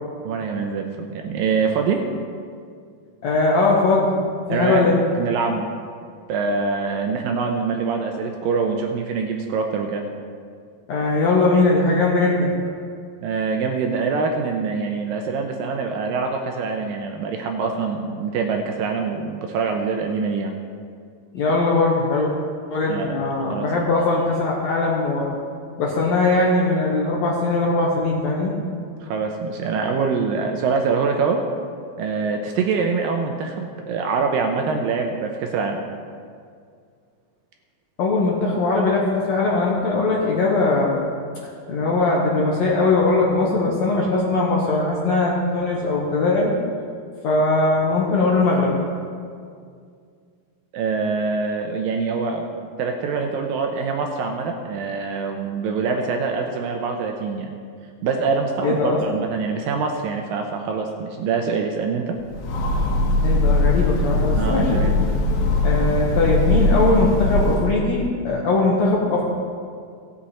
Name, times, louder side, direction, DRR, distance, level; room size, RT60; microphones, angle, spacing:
voice 1, 0.2-2.0 4.5-4.9 5.2-5.7 6.3-10.0 13.2-20.5 22.9-23.2 23.5-23.7 29.0-31.4 32.0-35.8 50.7-57.6 58.0-62.2 64.4-65.0, right 5 dB, 75° right, 3 dB, 2.2 m, -24 dB
voice 2, 3.2-4.1 4.5-5.0 10.9-12.5 21.3-22.3 22.7-25.3 25.8-28.5 38.0-41.0 41.7-46.5 47.2-48.7 58.6-59.2 63.2-64.8 65.6-69.2, left 3 dB, 65° left, -4 dB, 1.9 m, -20 dB
Train, 62.2-67.9, left 2 dB, 85° left, 3.0 m, -20 dB
17.0 x 7.1 x 4.2 m, 2.2 s
omnidirectional pair, 4.5 m